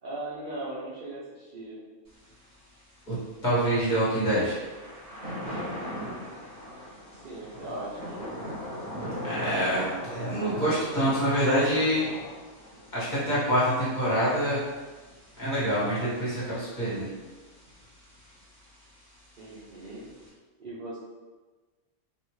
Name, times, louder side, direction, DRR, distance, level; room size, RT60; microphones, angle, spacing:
voice 1, 0.0-1.8 7.2-8.3 19.4-20.0 20.6-21.0, right 2 dB, 55° right, -8 dB, 0.5 m, -38 dB
Thunder / Rain, 2.1-20.3, equal, 15° right, 1.2 m, -41 dB
voice 2, 3.4-4.6 9.2-12.1 12.9-14.6 15.4-17.1, equal, 30° left, -11 dB, 1.4 m, -26 dB
3.3 x 2.5 x 3.0 m, 1.3 s
omnidirectional pair, 1.6 m